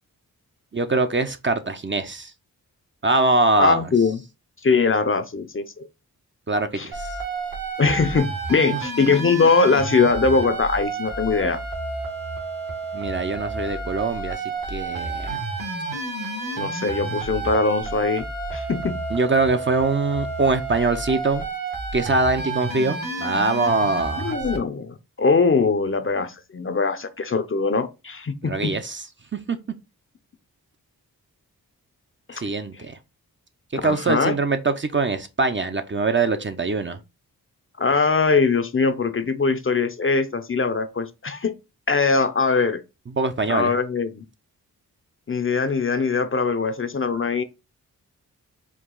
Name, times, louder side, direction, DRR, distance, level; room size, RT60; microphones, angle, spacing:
voice 1, 0.7-2.3 3.0-3.9 6.5-7.1 12.9-15.4 19.1-21.5 21.9-24.3 28.4-29.1 29.3-29.6 32.3-33.0 33.8-37.0 43.1-43.7, right 3 dB, 30° right, 0.6 m, -23 dB
voice 2, 3.6-4.2 4.6-5.9 6.7-6.9 7.8-11.6 16.6-18.2 18.5-19.0 24.2-28.7 32.3-32.4 33.8-34.4 37.8-41.5 41.9-42.8 43.5-44.2 45.3-47.4, left 4 dB, 35° left, 0.6 m, -21 dB
sound 1, 6.9-24.6, right 3 dB, 65° right, 1.5 m, -30 dB
4.8 x 2.3 x 3.8 m
cardioid pair, 50°, 37 cm